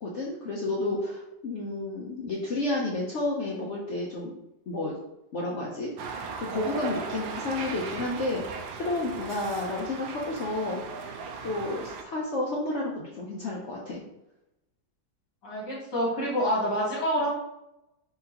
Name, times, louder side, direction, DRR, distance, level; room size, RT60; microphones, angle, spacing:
voice 1, 0.0-4.3 4.7-4.9 5.3-5.9 6.4-10.8 11.4-14.0, left 2 dB, 85° left, -3 dB, 0.6 m, -31 dB
sound 1, 6.0-12.0, right 5 dB, 85° right, 1.4 m, -37 dB
voice 2, 15.4-17.3, equal, 65° left, -5 dB, 1.9 m, -27 dB
4.3 x 3.7 x 2.8 m, 0.90 s
omnidirectional pair, 2.1 m